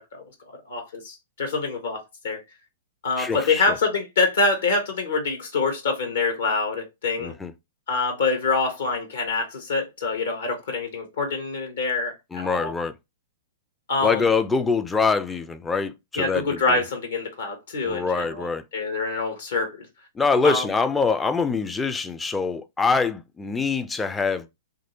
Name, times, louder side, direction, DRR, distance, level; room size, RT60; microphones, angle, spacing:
voice 1, 0.6-2.4 3.0-7.3 7.9-12.7 13.9-14.2 16.2-18.5 18.7-19.9 20.4-20.7, left 3 dB, 65° left, 0.9 m, -25 dB
voice 2, 3.2-3.6 7.2-7.5 12.3-12.9 14.0-16.8 17.8-18.6 20.2-24.6, left 4 dB, 10° left, 0.4 m, -24 dB
3.1 x 2.6 x 2.8 m
figure-of-eight pair, 105°, 0 cm